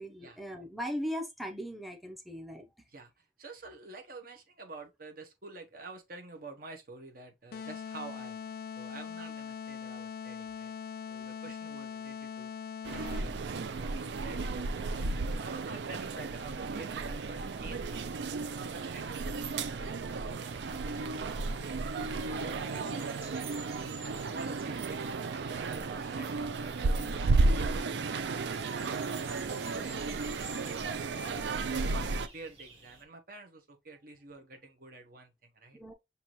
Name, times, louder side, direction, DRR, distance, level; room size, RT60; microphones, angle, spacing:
voice 1, 0.0-2.7 35.7-35.9, equal, ahead, 0.6 m, -38 dB
voice 2, 2.9-10.7 11.1-12.5 12.9-17.8 18.4-21.8 22.3-28.1 28.3-29.0 29.6-31.4 31.9-35.8, right 3 dB, 55° right, 1.1 m, -49 dB
sound 1, 7.5-13.5, left 7 dB, 55° left, 0.4 m, -41 dB
sound 2, 12.8-32.3, right 3 dB, 80° right, 0.5 m, -33 dB
sound 3, 18.8-33.0, right 3 dB, 35° right, 1.5 m, -54 dB
5.8 x 2.8 x 3.1 m
head